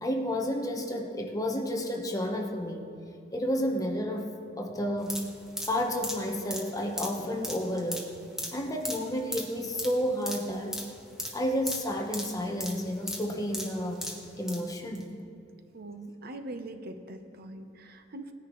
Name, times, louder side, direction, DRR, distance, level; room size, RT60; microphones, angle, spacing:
voice 1, 0.0-2.9 3.3-4.3 4.6-5.3 5.7-8.0 8.5-10.8 11.3-14.0 14.4-15.1, equal, 20° left, 2 dB, 1.1 m, -31 dB
sound 1, 5.0-14.6 14.9-15.0, equal, 5° right, 1.6 m, -38 dB
voice 2, 15.7-18.3, right 2 dB, 55° right, 7 dB, 0.8 m, -42 dB
19.5 x 10.0 x 3.1 m, 2.5 s
head